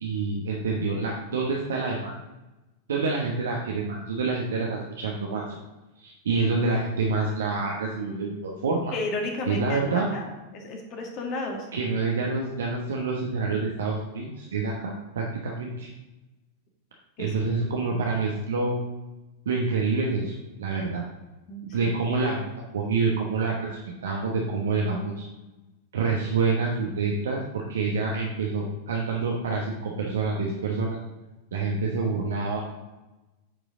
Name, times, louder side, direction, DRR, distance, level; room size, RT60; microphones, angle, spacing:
voice 1, 0.0-2.1 2.9-5.6 6.0-8.9 9.5-10.1 11.7-15.9 17.2-18.8 19.5-21.0 21.7-22.4 22.7-25.3 25.9-31.0 31.5-32.6, right 4 dB, 65° right, -1 dB, 1.0 m, -27 dB
voice 2, 8.9-11.7 17.2-17.3 21.5-21.9, left 2 dB, 40° left, 2 dB, 1.7 m, -33 dB
9.0 x 5.0 x 3.8 m, 1.1 s
figure-of-eight pair, 90°, 0 cm